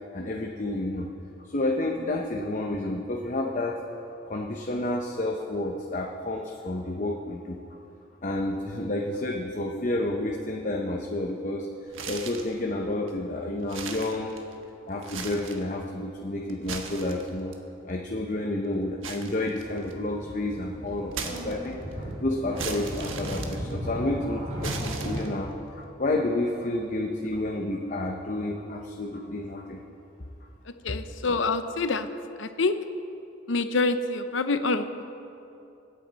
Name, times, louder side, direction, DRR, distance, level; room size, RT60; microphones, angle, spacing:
voice 1, 0.1-1.1 1.4-3.8 4.3-7.6 8.2-11.7 12.0-14.4 14.9-17.5 17.8-25.5 25.8-29.8, left 1 dB, 40° left, 0 dB, 0.8 m, -30 dB
sound 1, 11.9-12.6 13.1-13.2 13.6-14.6 15.0-15.7 16.5-17.5 19.0-20.1 21.1-21.9 22.6-24.1 24.6-25.5, right 5 dB, 90° right, 1.3 m, -38 dB
sound 2, 19.6-25.2, right 1 dB, 35° right, 3.8 m, -35 dB
voice 2, 30.8-32.1 32.4-32.8 33.5-35.0, left 3 dB, 75° left, 10 dB, 0.7 m, -26 dB
24.0 x 9.2 x 4.1 m, 2.8 s
head